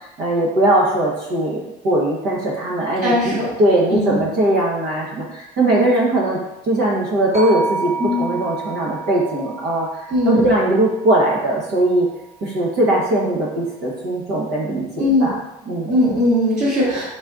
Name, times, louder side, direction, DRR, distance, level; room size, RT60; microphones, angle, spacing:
voice 1, 0.2-6.4 6.7-12.1 12.4-15.4 15.6-16.0, right 1 dB, 75° right, -4 dB, 1.1 m, -20 dB
voice 2, 3.0-3.5 3.9-4.2 8.0-8.4 10.1-10.4 15.0-15.3 15.9-17.0, left 1 dB, 45° right, -10 dB, 1.4 m, -19 dB
sound 1, 7.3-11.6, right 4 dB, 20° right, 1.2 m, -30 dB
4.0 x 3.9 x 2.4 m, 0.90 s
cardioid pair, 110°, 17 cm